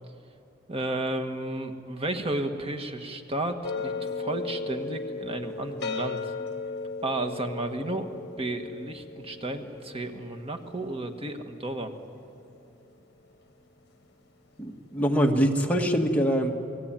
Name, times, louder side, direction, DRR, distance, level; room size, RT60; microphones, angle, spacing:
voice 1, 0.7-6.3 7.0-8.1 8.4-11.9, right 2 dB, 30° right, 5 dB, 1.6 m, -32 dB
sound 1, 3.6-12.8, left 4 dB, 60° left, 1.7 m, -36 dB
voice 2, 14.6-16.5, equal, 10° left, 1 dB, 1.9 m, -24 dB
29.5 x 19.0 x 9.0 m, 2.6 s
head